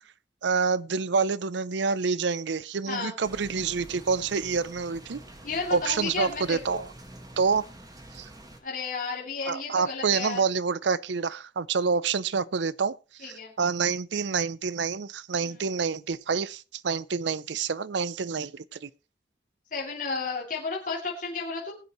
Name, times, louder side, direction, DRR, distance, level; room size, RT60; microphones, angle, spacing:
voice 1, 0.4-5.2 5.7-6.9 7.4-7.6 8.1-8.3 9.5-18.9, right 5 dB, 70° right, 0.5 m, -27 dB
voice 2, 2.9-3.2 5.4-6.8 8.6-10.4 13.2-13.5 15.4-15.6 19.7-21.7, left 4 dB, 45° left, 2.7 m, -33 dB
sound 1, 3.2-8.6, right 1 dB, 20° right, 1.7 m, -47 dB
21.0 x 7.9 x 3.1 m
head